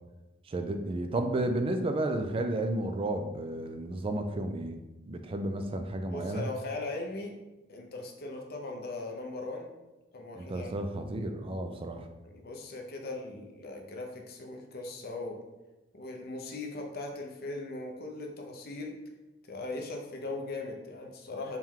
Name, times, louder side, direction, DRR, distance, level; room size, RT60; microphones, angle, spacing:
voice 1, 0.5-4.8 5.1-6.4 10.3-12.1, right 1 dB, 25° right, 6 dB, 0.3 m, -32 dB
voice 2, 6.1-7.3 7.7-9.7 10.1-10.7 12.2-15.4 15.9-19.0 19.5-21.6, left 2 dB, 50° left, 2 dB, 0.5 m, -39 dB
4.5 x 2.2 x 3.6 m, 1.1 s
head